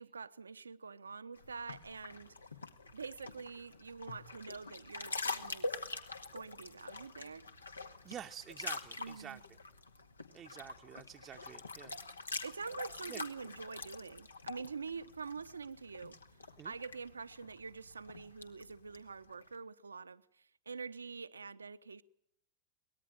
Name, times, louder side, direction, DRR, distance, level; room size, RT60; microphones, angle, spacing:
voice 1, 0.0-2.3 2.9-5.9 6.3-7.5 9.0-9.4 12.4-16.2 16.6-22.0, right 5 dB, 75° right, 0.9 m, -46 dB
sound 1, 1.4-19.5, left 3 dB, 80° left, 2.0 m, -45 dB
voice 2, 8.0-9.4 10.3-11.9 13.1-13.2 16.6-16.7, right 9 dB, 25° right, 0.9 m, -48 dB
23.5 x 19.5 x 9.2 m
figure-of-eight pair, 90°, 0 cm